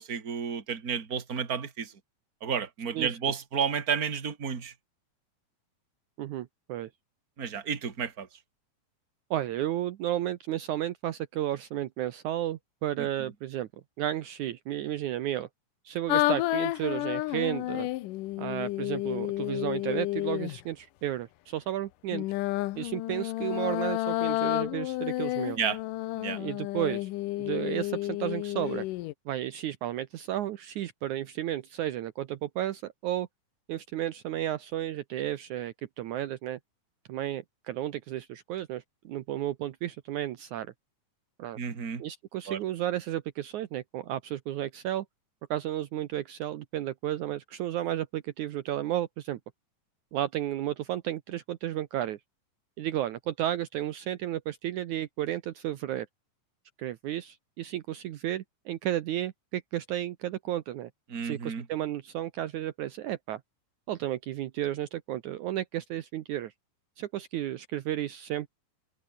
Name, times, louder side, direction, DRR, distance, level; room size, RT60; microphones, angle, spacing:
voice 1, 0.0-2.0 2.4-4.7 7.4-8.4 13.0-13.3 25.6-25.8 26.1-26.4 41.6-42.0 42.5-42.6 61.1-61.7, right 7 dB, 30° right, 2.5 m, -32 dB
voice 2, 6.2-6.9 9.3-13.7 14.0-15.5 15.8-17.9 18.4-22.2 22.8-25.6 26.4-27.1 27.4-28.9 29.3-33.3 33.7-36.6 37.1-40.7 41.4-41.6 42.0-45.1 45.5-49.4 50.1-52.2 52.8-56.1 56.8-60.9 61.2-63.4 63.9-66.5 67.0-68.5, right 12 dB, 70° right, 2.3 m, -33 dB
sound 1, 16.1-20.6 22.1-29.1, left 17 dB, 80° left, 2.3 m, -31 dB
open air
omnidirectional pair, 3.8 m